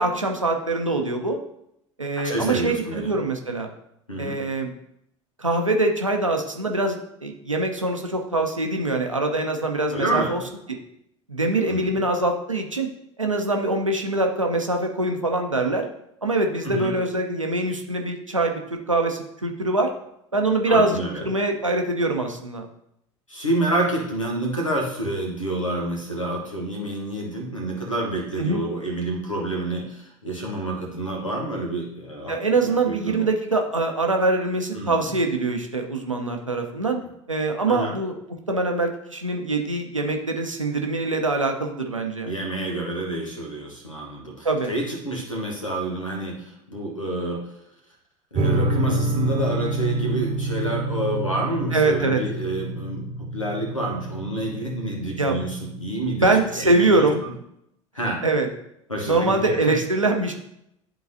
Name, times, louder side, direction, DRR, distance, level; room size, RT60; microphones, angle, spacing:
voice 1, 0.0-1.4 2.0-3.7 4.2-4.7 5.4-10.4 11.3-12.9 13.2-15.9 16.2-19.9 20.3-22.7 28.4-28.6 32.3-37.0 37.3-38.1 38.5-42.3 44.4-44.7 51.7-52.2 55.2-55.4 56.2-57.2 58.2-58.5 59.0-60.3, right 2 dB, 90° right, 3 dB, 0.7 m, -23 dB
voice 2, 2.2-3.1 4.1-4.4 9.9-10.4 11.7-11.9 16.6-16.9 20.7-21.3 23.3-33.3 34.7-35.0 37.7-37.9 42.2-47.4 48.3-56.3 56.5-57.3 57.9-58.2 58.9-59.8, right 1 dB, 90° left, 0 dB, 1.4 m, -28 dB
sound 1, 48.3-57.3, right 2 dB, 35° right, 0.9 m, -29 dB
10.5 x 3.9 x 2.7 m, 0.77 s
figure-of-eight pair, 70°, 16 cm